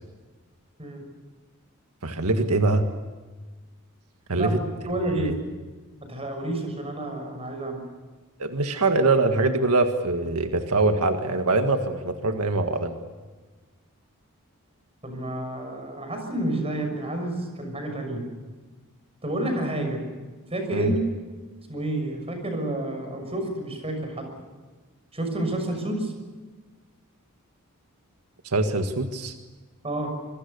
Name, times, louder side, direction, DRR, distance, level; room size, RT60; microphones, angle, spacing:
voice 1, 2.0-2.9 4.3-4.6 5.1-5.3 8.4-13.0 20.7-20.9 28.4-29.4, right 2 dB, 90° right, 6 dB, 1.7 m, -23 dB
voice 2, 4.8-5.3 6.1-7.8 15.0-18.2 19.2-20.0 20.5-21.0 21.7-24.3 25.1-26.1 29.8-30.1, right 1 dB, 25° right, 5 dB, 6.3 m, -29 dB
25.5 x 23.5 x 6.8 m, 1.3 s
head